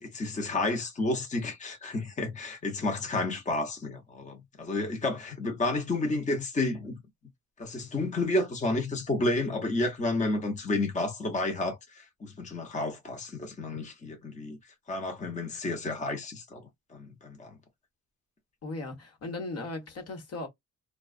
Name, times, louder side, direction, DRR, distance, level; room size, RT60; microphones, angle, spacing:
voice 1, 0.0-7.0 7.6-14.6 14.9-17.5, left 2 dB, 25° left, 0.8 m, -31 dB
voice 2, 18.6-20.5, left 2 dB, 55° left, 1.2 m, -37 dB
2.3 x 2.3 x 2.3 m
cardioid pair, 90°, 30 cm